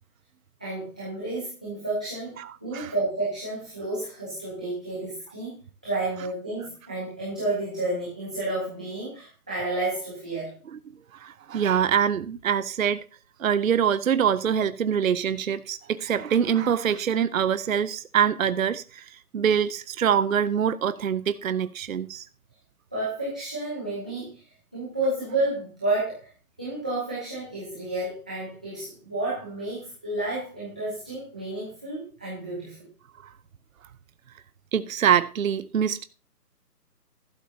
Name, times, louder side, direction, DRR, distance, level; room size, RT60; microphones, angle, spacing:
voice 1, 0.6-2.4 2.6-5.6 5.8-10.5 22.9-24.4 24.7-26.3 26.6-32.9, right 2 dB, 5° right, 0.7 m, -31 dB
voice 2, 2.4-2.9 11.1-13.0 13.4-19.0 19.3-22.2 34.7-36.0, right 8 dB, 55° right, 0.7 m, -24 dB
14.5 x 12.5 x 2.7 m
figure-of-eight pair, 160°, 48 cm